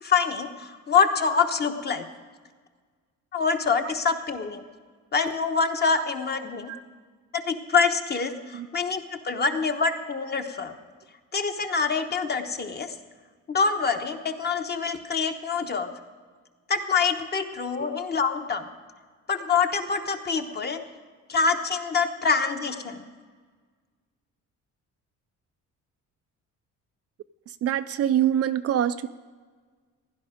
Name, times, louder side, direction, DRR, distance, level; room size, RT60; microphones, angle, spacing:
voice 1, 0.0-2.0 3.3-4.6 5.1-6.7 7.3-10.7 11.3-12.9 13.5-15.9 16.7-18.7 19.3-20.8 21.3-23.0, left 5 dB, 30° left, 6 dB, 1.0 m, -25 dB
voice 2, 27.6-29.1, right 10 dB, 50° right, 11 dB, 0.4 m, -25 dB
16.0 x 11.0 x 5.0 m, 1.5 s
cardioid pair, 140°, 32 cm